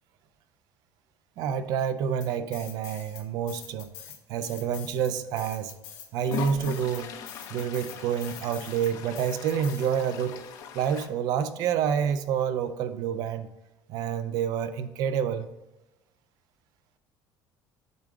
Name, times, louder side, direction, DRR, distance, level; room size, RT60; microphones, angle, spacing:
voice 1, 1.4-3.9 4.3-5.7 6.1-7.1 7.5-10.4 10.7-13.5 13.9-15.5, right 8 dB, 55° right, 11 dB, 0.5 m, -28 dB
sound 1, 2.2-3.2 3.5-10.3, left 9 dB, 65° left, 1.3 m, -45 dB
Toilet flush, 5.3-5.4 6.2-11.1, left 7 dB, 45° left, 0.6 m, -40 dB
8.1 x 3.7 x 4.7 m, 1.0 s
cardioid pair, 180°, 8 cm